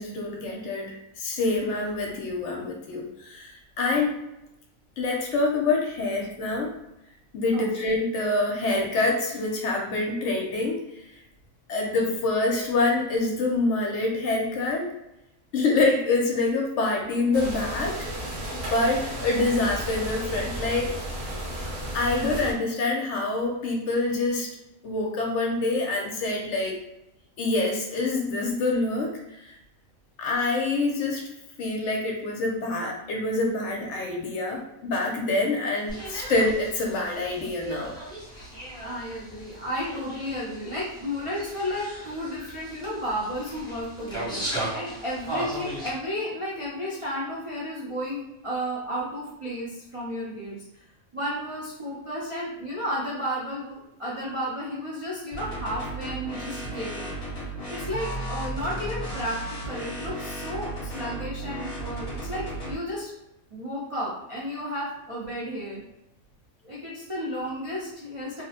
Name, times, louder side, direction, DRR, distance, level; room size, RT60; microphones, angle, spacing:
voice 1, 0.0-4.1 5.0-6.7 7.3-10.8 11.7-14.9 15.5-18.1 18.5-20.9 21.9-24.5 24.8-26.8 27.4-29.6 30.2-31.2 31.6-37.9, left 2 dB, 65° left, 0 dB, 0.8 m, -26 dB
sound 1, 17.3-22.5, equal, 75° right, 1.2 m, -33 dB
sound 2, 35.9-45.9, right 1 dB, 5° left, 0.4 m, -37 dB
voice 2, 38.8-50.9 51.1-57.2 57.7-63.1 63.5-65.8 66.6-68.4, equal, 60° right, -7 dB, 0.3 m, -33 dB
sound 3, 55.3-62.8, right 1 dB, 30° left, 0.8 m, -34 dB
2.8 x 2.0 x 2.7 m, 0.90 s
omnidirectional pair, 1.4 m